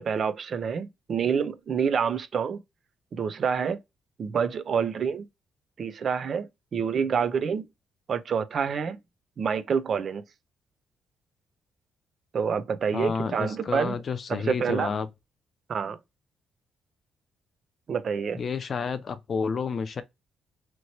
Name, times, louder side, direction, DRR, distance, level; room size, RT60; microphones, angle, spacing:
voice 1, 0.0-2.6 3.1-3.8 4.2-5.3 5.8-7.6 8.1-9.0 9.4-10.2 12.3-14.0 14.3-14.9 15.7-16.0 17.9-18.4, right 6 dB, 50° right, 0.5 m, -27 dB
voice 2, 12.9-15.1 18.4-20.0, left 5 dB, 45° left, 0.6 m, -30 dB
3.0 x 2.9 x 2.7 m
cardioid pair, 90°, 0 cm